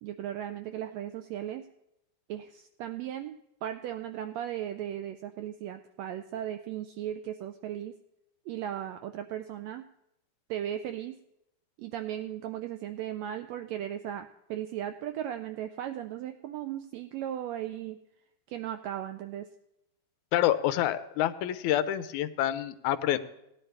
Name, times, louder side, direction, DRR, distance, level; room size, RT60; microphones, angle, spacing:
voice 1, 0.0-1.7 2.3-7.9 8.5-9.8 10.5-11.2 11.8-18.0 18.5-19.5, right 11 dB, 90° right, 7 dB, 1.5 m, -37 dB
voice 2, 20.3-23.2, left 12 dB, 80° left, 11 dB, 2.0 m, -27 dB
17.0 x 10.5 x 3.3 m, 0.84 s
omnidirectional pair, 3.6 m